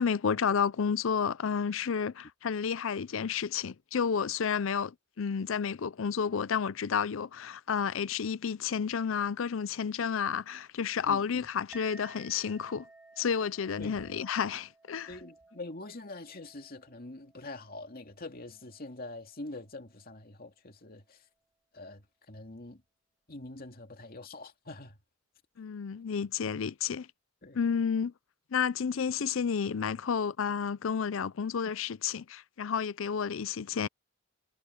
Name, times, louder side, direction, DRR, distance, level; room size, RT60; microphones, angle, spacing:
voice 1, 0.0-12.8 13.2-15.1 25.6-27.1 27.5-28.1 28.5-33.9, left 6 dB, 70° left, 0.5 m, -31 dB
voice 2, 11.1-11.4 13.8-14.1 15.1-21.2 21.7-22.8 23.3-25.0 27.4-27.6, left 2 dB, 45° left, 2.5 m, -44 dB
Chink clink, 11.7-20.4, right 1 dB, 5° right, 3.1 m, -57 dB
head